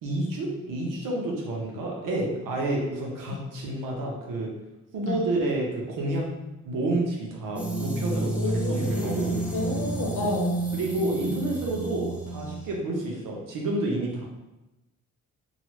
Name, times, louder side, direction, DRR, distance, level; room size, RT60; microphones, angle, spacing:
voice 1, 0.0-4.5 4.9-6.2 6.6-9.4 10.7-14.2, right 2 dB, 80° right, -1 dB, 0.8 m, -29 dB
sound 1, 7.6-12.8, right 2 dB, 5° right, 0.5 m, -30 dB
voice 2, 8.4-9.1 9.5-10.6, left 2 dB, 70° left, -1 dB, 0.9 m, -30 dB
3.0 x 2.4 x 2.9 m, 0.99 s
cardioid pair, 80°, 32 cm